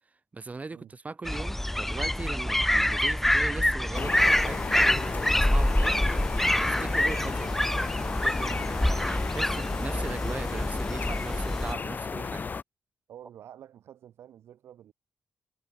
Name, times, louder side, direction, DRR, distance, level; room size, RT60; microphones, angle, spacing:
voice 1, 0.3-6.0 6.6-7.6 7.9-12.4, right 3 dB, 35° right, 4.4 m, -39 dB
sound 1, 1.3-11.7, left 1 dB, 5° left, 0.4 m, -26 dB
sound 2, 3.9-12.6, left 5 dB, 40° left, 1.0 m, -34 dB
voice 2, 13.1-14.9, right 10 dB, 75° right, 6.1 m, -49 dB
supercardioid pair, 50°, 4 cm